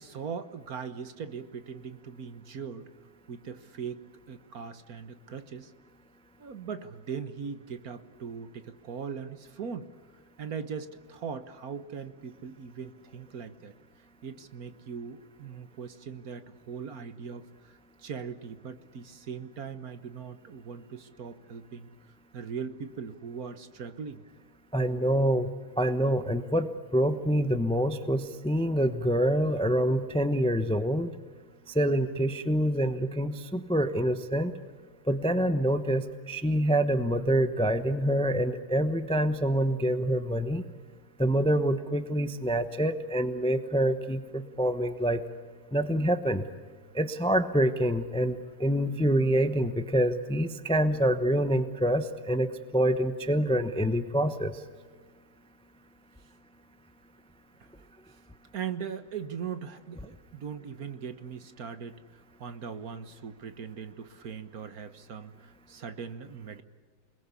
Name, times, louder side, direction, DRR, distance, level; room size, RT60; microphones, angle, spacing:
voice 1, 0.0-2.9 3.3-4.0 4.3-5.7 6.4-9.9 10.4-13.7 14.2-21.9 22.3-24.2 57.6-57.7 58.1-58.2 58.5-66.6, right 6 dB, 50° right, 11 dB, 1.5 m, -40 dB
voice 2, 24.7-25.5 25.8-31.1 31.7-34.5 35.1-40.6 41.2-45.2 45.7-46.5 46.9-54.6, right 1 dB, 10° left, 10 dB, 0.3 m, -26 dB
28.5 x 21.0 x 8.3 m, 1.5 s
omnidirectional pair, 2.2 m